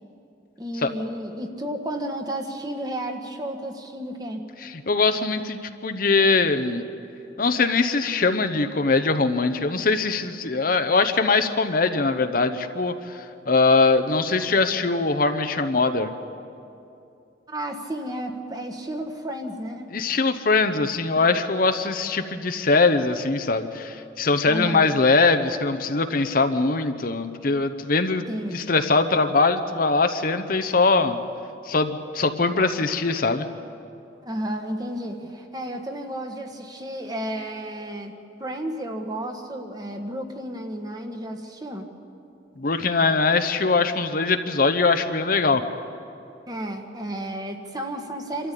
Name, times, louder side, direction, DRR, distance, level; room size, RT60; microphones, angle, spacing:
voice 1, 0.6-4.5 17.5-19.9 24.4-24.9 28.3-28.6 34.2-38.1 38.4-41.9 46.5-48.5, right 1 dB, 20° right, 4 dB, 1.4 m, -32 dB
voice 2, 4.6-6.8 7.4-16.1 19.9-28.3 28.5-31.2 31.7-33.5 42.6-45.6, left 3 dB, 50° left, 8 dB, 0.8 m, -22 dB
26.0 x 13.5 x 8.4 m, 2.7 s
head